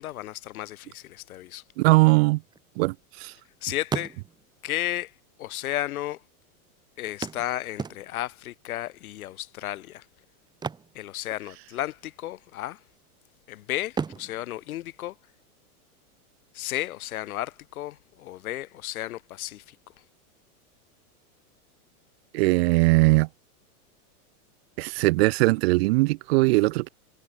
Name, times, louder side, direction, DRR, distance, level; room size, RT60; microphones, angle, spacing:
voice 1, 0.0-1.6 3.6-4.2 4.6-5.1 5.4-6.2 7.0-10.1 10.9-12.8 13.5-15.2 16.5-19.8, left 14 dB, 70° left, 7.4 m, -33 dB
voice 2, 1.8-2.4 2.8-3.3 22.3-23.3 24.8-26.9, right 23 dB, 45° right, 1.1 m, -20 dB
sound 1, 2.4-3.5 3.8-4.6 5.5-5.6 5.9-6.0 7.2-8.4 10.5-11.8 12.0-12.3 12.8-13.4 13.9-15.6 17.6-17.7 18.1-18.2, right 5 dB, 10° right, 1.6 m, -36 dB
supercardioid pair, 165°, 45 cm